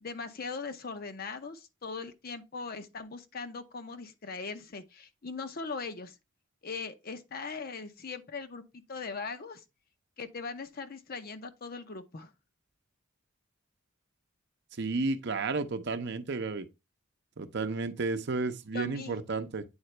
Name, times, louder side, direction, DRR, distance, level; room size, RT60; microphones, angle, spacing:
voice 1, 0.0-6.2 6.6-9.6 10.2-12.3 18.7-19.2, left 4 dB, 50° left, 0.7 m, -40 dB
voice 2, 14.8-16.7 17.4-19.6, right 3 dB, 55° right, 0.7 m, -32 dB
8.8 x 3.9 x 3.2 m
head